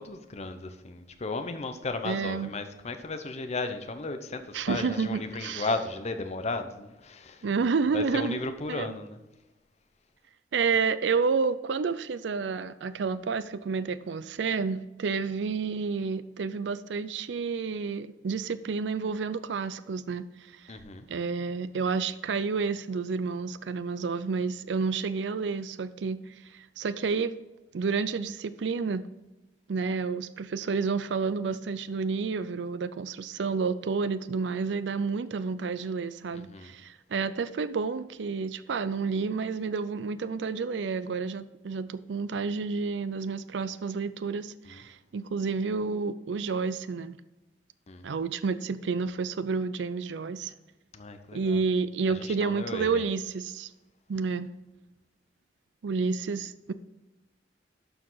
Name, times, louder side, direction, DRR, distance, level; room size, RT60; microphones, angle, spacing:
voice 1, 0.0-7.5 7.9-9.2 20.7-21.1 36.3-36.7 44.6-44.8 47.9-48.1 50.9-51.6 52.1-53.1, left 3 dB, 40° left, 7 dB, 0.7 m, -35 dB
voice 2, 2.0-2.5 4.5-5.7 7.4-8.4 8.7-8.9 10.5-20.3 21.1-26.2 26.5-27.3 27.7-29.0 29.7-47.2 48.0-50.5 51.3-53.7 54.1-54.5 55.8-56.7, right 5 dB, 90° right, 14 dB, 0.5 m, -30 dB
12.0 x 4.8 x 3.9 m, 1.0 s
head